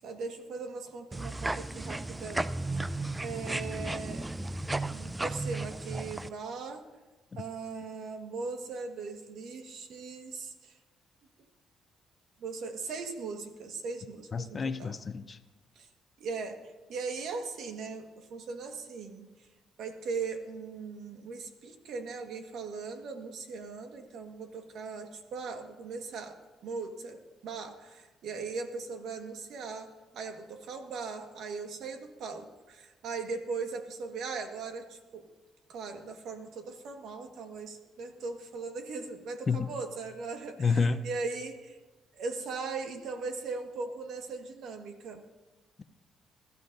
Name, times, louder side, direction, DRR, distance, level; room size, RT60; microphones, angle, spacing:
voice 1, 0.0-2.4 2.7-2.8 3.2-4.3 4.9-6.8 7.3-10.8 12.4-15.0 15.7-15.9 16.2-19.3 19.8-35.2 35.7-41.8 42.1-45.2, right 4 dB, 75° right, 1.5 m, -39 dB
sound 1, 1.1-6.3, right 2 dB, 15° right, 0.5 m, -34 dB
voice 2, 14.3-15.4 39.5-39.7 40.6-41.1, left 4 dB, 35° left, 0.6 m, -29 dB
21.5 x 13.5 x 2.6 m
cardioid pair, 90°, 0 cm